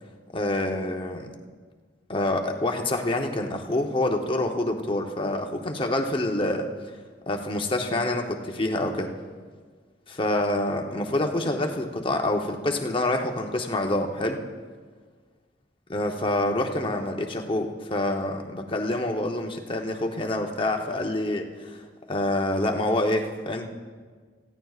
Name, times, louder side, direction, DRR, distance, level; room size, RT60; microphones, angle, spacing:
voice 1, 0.3-1.4 2.1-6.7 7.3-9.1 10.1-14.4 15.9-23.7, left 1 dB, 30° left, 3 dB, 0.9 m, -27 dB
18.5 x 15.0 x 2.4 m, 1.6 s
head